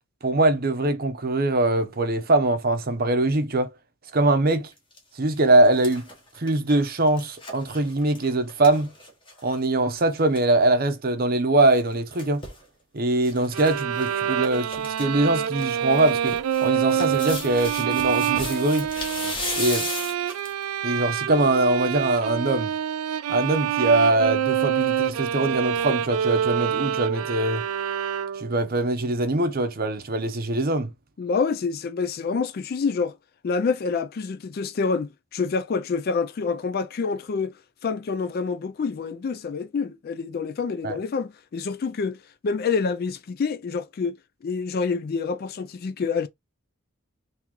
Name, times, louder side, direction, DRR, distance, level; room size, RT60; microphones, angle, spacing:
voice 1, 0.2-3.7 4.1-4.7 5.2-6.0 6.4-8.9 9.4-12.4 12.9-18.9 19.6-19.9 20.8-22.7 23.3-27.6 28.4-30.9 40.8-41.0, right 2 dB, 45° right, 0.7 m, -22 dB
sound 1, 4.7-5.0 5.4-9.6 9.9-10.0 10.2-10.4 11.7-12.6 13.2-13.7 14.0-14.1 14.4-15.0 15.4-20.6 21.1-21.2, left 2 dB, 20° left, 1.0 m, -35 dB
sound 2, 13.5-28.6, right 9 dB, 75° right, 0.4 m, -26 dB
voice 2, 31.2-33.1 33.4-42.2 42.4-44.2 44.4-46.3, left 5 dB, 45° left, 0.3 m, -27 dB
3.0 x 2.8 x 3.6 m
head